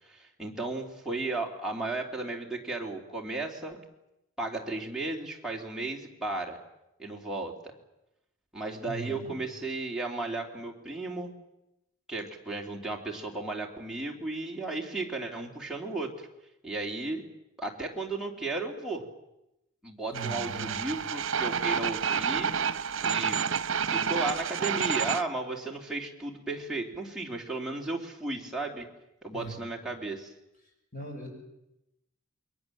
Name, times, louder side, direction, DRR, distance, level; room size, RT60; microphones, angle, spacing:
voice 1, 0.0-3.8 4.4-6.6 7.0-7.6 8.5-11.3 12.1-16.3 16.6-17.2 17.6-19.0 19.8-22.5 23.0-23.5 23.8-28.9 29.2-30.3, right 2 dB, 5° right, -2 dB, 3.2 m, -34 dB
voice 2, 8.8-9.4 20.1-20.8 29.3-29.6 30.9-31.4, right 2 dB, 45° left, 2 dB, 6.5 m, -39 dB
sound 1, 20.1-25.2, right 7 dB, 80° right, 0.8 m, -29 dB
28.5 x 22.5 x 7.7 m, 0.89 s
head